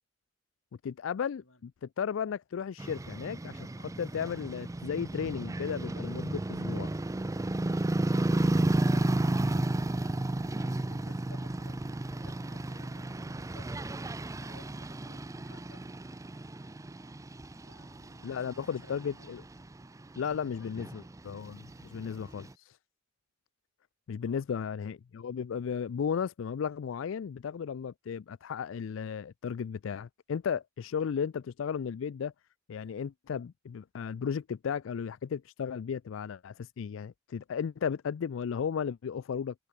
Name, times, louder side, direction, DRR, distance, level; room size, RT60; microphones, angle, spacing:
voice 1, 0.8-6.9 18.2-19.4 20.2-22.8 24.1-32.3 32.7-39.5, left 7 dB, 70° left, 0.4 m, -35 dB
sound 1, 2.8-22.5, right 1 dB, 15° right, 0.5 m, -33 dB
voice 2, 8.1-14.1 14.3-16.0 17.6-19.4 20.4-21.0 24.2-24.8, left 2 dB, 90° left, 7.8 m, -58 dB
head